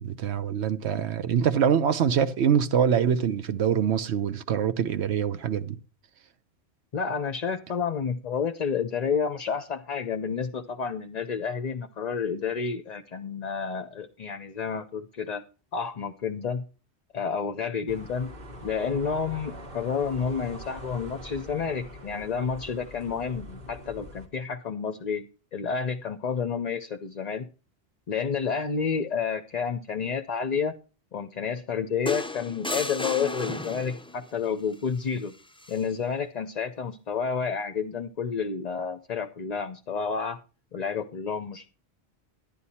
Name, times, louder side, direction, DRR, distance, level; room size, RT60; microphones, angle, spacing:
voice 1, 0.0-5.8, right 8 dB, 75° right, 1.1 m, -24 dB
voice 2, 6.9-15.4 15.7-16.7 17.1-18.3 18.6-25.2 25.5-27.5 28.1-30.7 31.1-35.3 35.7-40.4 40.7-41.7, left 6 dB, 45° left, 0.7 m, -30 dB
sound 1, 17.9-24.3, equal, 55° right, 1.7 m, -43 dB
sound 2, 32.1-34.2 35.6-35.8, left 2 dB, 5° left, 0.4 m, -33 dB
11.5 x 10.5 x 4.2 m
omnidirectional pair, 1.1 m